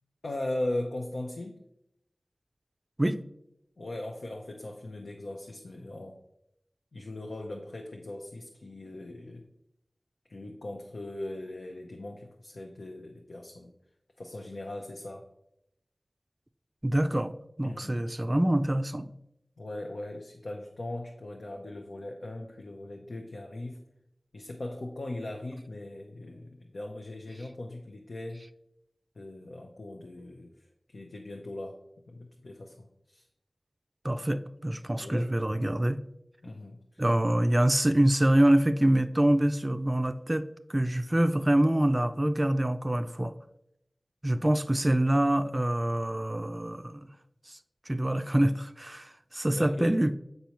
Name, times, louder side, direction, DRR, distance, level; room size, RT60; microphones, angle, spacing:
voice 1, 0.2-1.6 3.8-6.2 6.9-9.5 10.3-13.7 14.2-15.2 17.6-18.1 19.6-23.8 24.3-28.5 29.2-31.8 32.1-33.3 35.0-35.3 36.4-37.0 49.5-50.0, left 1 dB, 85° left, 1 dB, 0.6 m, -39 dB
voice 2, 16.8-19.1 34.0-36.0 37.0-43.3 44.2-47.1 47.5-47.6 47.9-50.2, right 1 dB, 30° right, 11 dB, 0.4 m, -25 dB
6.9 x 5.3 x 3.0 m, 0.80 s
wide cardioid pair, 45°, 0 cm